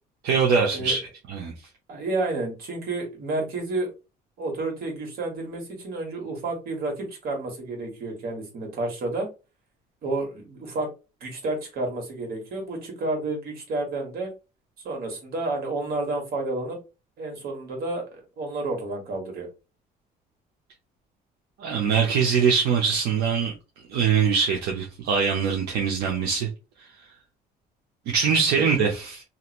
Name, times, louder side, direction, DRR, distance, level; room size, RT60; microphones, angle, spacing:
voice 1, 0.2-1.5 21.6-23.5 23.9-26.5 26.8-26.9 28.1-29.2, right 6 dB, 85° right, 0.8 m, -23 dB
voice 2, 1.9-3.9 4.4-9.3 10.0-10.9 11.2-14.3 14.8-16.8 17.2-19.5, right 2 dB, 65° right, 1.6 m, -30 dB
2.8 x 2.5 x 3.0 m
cardioid pair, 110°, 17 cm